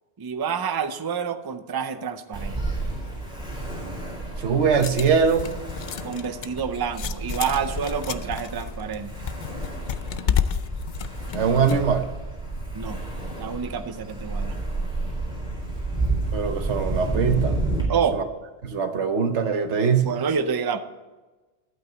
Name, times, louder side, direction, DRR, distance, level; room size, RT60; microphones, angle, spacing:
voice 1, 0.2-2.6 6.0-9.1 12.7-13.0 13.4-14.6 17.9-18.2 20.0-20.8, right 6 dB, 30° right, 9 dB, 0.5 m, -28 dB
Ocean, 2.3-17.8, right 2 dB, 5° right, 3.9 m, -31 dB
voice 2, 4.4-5.5 11.3-12.1 16.3-17.6 18.1-18.2 18.6-20.1, right 6 dB, 90° right, 7 dB, 1.3 m, -22 dB
sound 1, 4.6-11.9, left 8 dB, 55° left, 0.6 m, -31 dB
12.0 x 8.5 x 4.0 m, 1.2 s
omnidirectional pair, 1.1 m